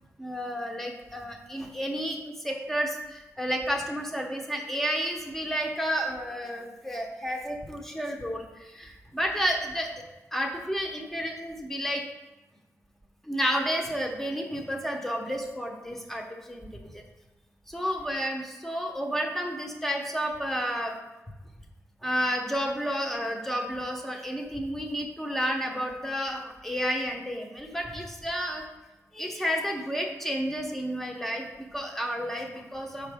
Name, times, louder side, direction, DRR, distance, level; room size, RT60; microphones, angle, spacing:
voice 1, 0.2-2.2 2.4-9.9 10.3-12.0 13.2-17.0 17.7-20.9 22.0-28.6 29.1-33.1, equal, 5° left, 2 dB, 0.9 m, -31 dB
5.4 x 4.9 x 3.5 m, 1.1 s
cardioid pair, 85°, 6 cm